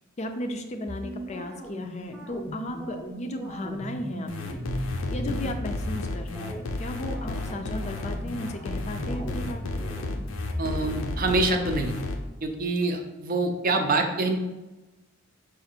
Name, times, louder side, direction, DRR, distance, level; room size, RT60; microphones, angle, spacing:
voice 1, 0.2-4.7 5.1-9.6, left 1 dB, 35° left, 6 dB, 0.4 m, -35 dB
sound 1, 0.9-6.0 6.3-6.6 7.0-11.4, equal, 5° right, 0.7 m, -36 dB
sound 2, 4.3-12.2, left 3 dB, 90° left, 0.6 m, -33 dB
voice 2, 10.6-11.9 12.4-14.4, right 2 dB, 45° right, 4 dB, 0.5 m, -25 dB
4.9 x 2.5 x 4.4 m, 1.1 s
head